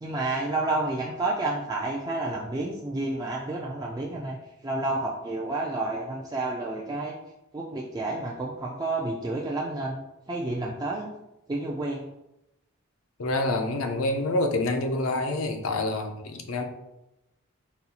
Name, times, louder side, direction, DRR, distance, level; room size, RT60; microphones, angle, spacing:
voice 1, 0.0-7.2 7.5-10.0 10.3-11.1 11.5-12.1, right 2 dB, 20° right, -3 dB, 0.3 m, -30 dB
voice 2, 13.2-16.6, left 2 dB, 75° left, 5 dB, 0.6 m, -27 dB
4.1 x 2.3 x 4.1 m, 0.90 s
head